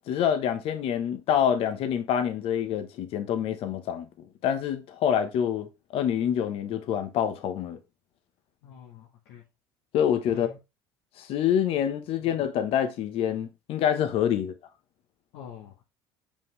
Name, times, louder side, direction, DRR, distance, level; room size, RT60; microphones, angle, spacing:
voice 1, 0.0-4.1 4.4-7.8 9.9-10.5 11.2-14.5, left 9 dB, 60° left, 1.1 m, -26 dB
voice 2, 8.6-9.4 10.3-10.6 12.2-12.3 15.3-15.8, left 8 dB, 75° left, 1.4 m, -45 dB
5.4 x 5.4 x 3.3 m
supercardioid pair, 90°, 11 cm